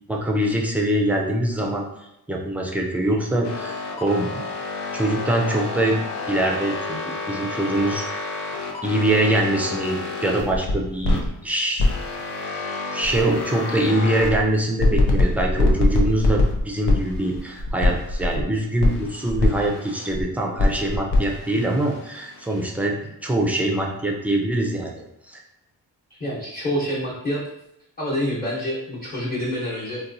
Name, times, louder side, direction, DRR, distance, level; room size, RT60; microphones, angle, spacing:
voice 1, 0.1-1.8 2.3-4.4 4.9-6.0 6.3-7.0 7.3-8.2 8.8-11.8 12.9-25.0 25.3-25.4, right 1 dB, 5° right, 0 dB, 0.3 m, -23 dB
sound 1, 3.4-11.3 11.8-14.4 14.8-18.4 18.8-20.2 20.6-22.6, left 2 dB, 80° left, 0.7 m, -25 dB
voice 2, 26.2-27.4 28.0-30.0, equal, 20° left, -10 dB, 0.9 m, -27 dB
4.1 x 2.3 x 2.6 m, 0.86 s
wide cardioid pair, 145°, 39 cm